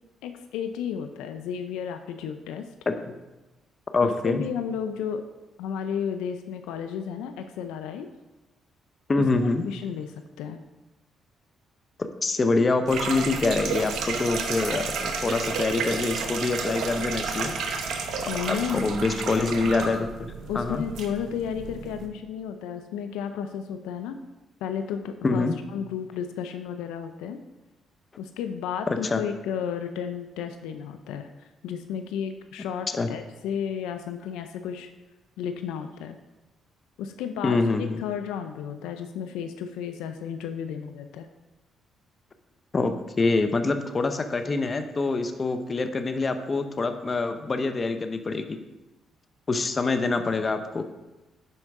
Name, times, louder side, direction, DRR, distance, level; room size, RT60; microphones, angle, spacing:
voice 1, 0.2-2.7 4.0-5.3 5.6-8.1 9.2-10.6 18.3-18.9 19.4-19.5 20.5-24.2 24.6-25.4 25.7-27.4 28.2-34.9 35.4-36.2 37.0-41.3 50.2-50.4, left 8 dB, 85° left, 8 dB, 0.4 m, -33 dB
voice 2, 3.9-4.4 9.1-9.6 12.0-17.5 18.5-20.8 25.2-25.6 28.9-29.2 33.0-33.1 37.4-38.0 42.7-48.6 49.5-50.8, left 3 dB, 35° left, 8 dB, 0.7 m, -25 dB
sound 1, 12.9-22.1, right 5 dB, 70° right, 1.0 m, -31 dB
11.0 x 4.5 x 3.6 m, 1.1 s
supercardioid pair, 65°, 0 cm